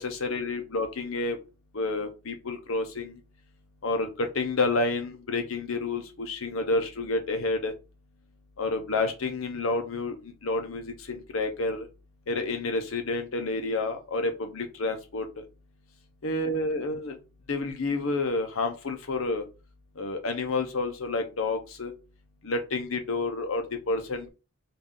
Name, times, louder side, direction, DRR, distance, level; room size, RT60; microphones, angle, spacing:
voice 1, 0.0-1.4 1.7-3.2 3.8-7.7 8.6-10.2 10.4-11.9 12.3-15.2 16.2-17.1 17.5-19.4 20.0-21.9 22.4-24.3, left 3 dB, 75° left, 5 dB, 0.8 m, -29 dB
3.8 x 2.5 x 3.7 m, 0.31 s
head